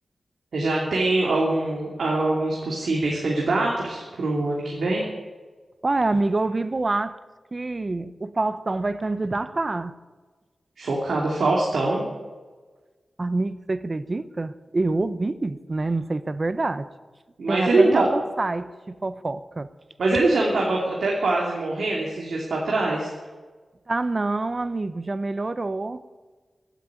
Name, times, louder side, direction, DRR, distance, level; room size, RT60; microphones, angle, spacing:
voice 1, 0.5-5.0 10.8-12.0 17.4-18.1 20.0-23.1, right 2 dB, 80° right, 3.0 m, -23 dB
voice 2, 5.8-7.2 7.5-10.0 13.2-16.9 17.5-19.7 23.9-26.0, right 2 dB, 30° right, 0.7 m, -26 dB
16.0 x 9.2 x 8.6 m
wide cardioid pair, 140°, 0 cm